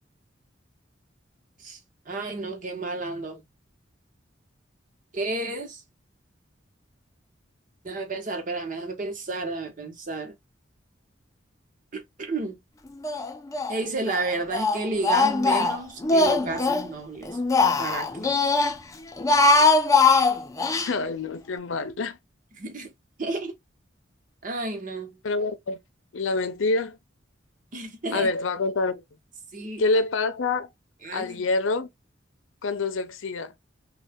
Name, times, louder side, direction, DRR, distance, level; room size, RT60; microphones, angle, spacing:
voice 1, 2.1-3.4 5.1-5.8 7.8-10.3 11.9-12.6 13.7-17.4 17.8-18.4 22.5-22.9 23.2-23.5 24.4-25.2 27.7-28.3 29.5-29.9 31.0-31.4, right 2 dB, 45° right, 0.9 m, -31 dB
Speech, 13.0-13.8 14.1-16.9 17.3-18.7 19.1-20.9, left 3 dB, 15° left, 0.4 m, -21 dB
voice 2, 20.8-22.2 25.2-25.8 26.1-27.0 28.1-29.0 29.8-30.7 31.1-31.9 32.6-33.5, left 3 dB, 85° left, 0.6 m, -26 dB
3.2 x 2.3 x 3.3 m
head